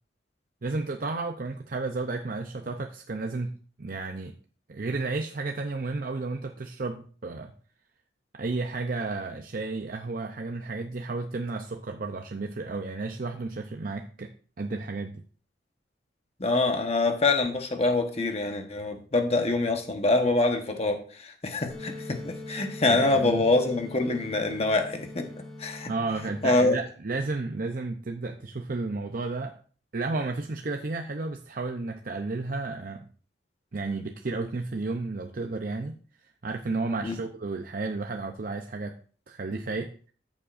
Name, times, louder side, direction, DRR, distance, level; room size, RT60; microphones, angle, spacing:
voice 1, 0.6-3.5 3.8-4.3 4.7-7.5 8.3-14.3 14.6-15.2 22.9-23.4 25.9-29.6 29.9-33.0 33.7-36.0 36.4-39.0 39.3-40.1, right 3 dB, 50° right, 4 dB, 0.6 m, -32 dB
voice 2, 16.4-25.3 25.6-25.9 26.4-26.8 37.0-37.1, left 2 dB, 35° left, 5 dB, 1.2 m, -25 dB
sound 1, 21.7-26.7, left 2 dB, 5° left, 1.5 m, -42 dB
13.5 x 7.3 x 2.5 m, 0.43 s
head